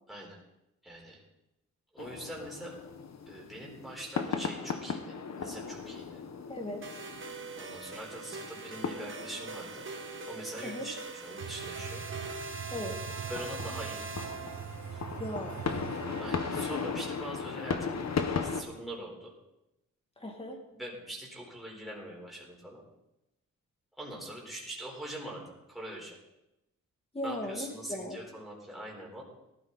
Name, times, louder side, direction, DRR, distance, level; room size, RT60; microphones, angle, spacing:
voice 1, 0.8-1.2 1.9-2.8 3.3-6.2 7.6-9.9 10.3-11.0 11.2-12.0 13.3-14.1 16.2-19.3 20.8-22.8 24.0-25.4 25.7-26.2 27.2-29.2, right 1 dB, ahead, -4 dB, 4.3 m, -43 dB
sound 1, 2.0-18.6, left 5 dB, 55° left, 1.3 m, -38 dB
voice 2, 6.5-7.1 10.6-10.9 12.7-13.2 15.2-15.6 20.2-20.6 27.1-28.2, left 1 dB, 20° left, 2 dB, 2.6 m, -38 dB
sound 2, 6.8-14.9, right 4 dB, 40° right, 1.5 m, -42 dB
sound 3, 11.4-17.0, right 7 dB, 60° right, 0.9 m, -43 dB
18.5 x 12.5 x 4.2 m, 0.93 s
wide cardioid pair, 130°, 31 cm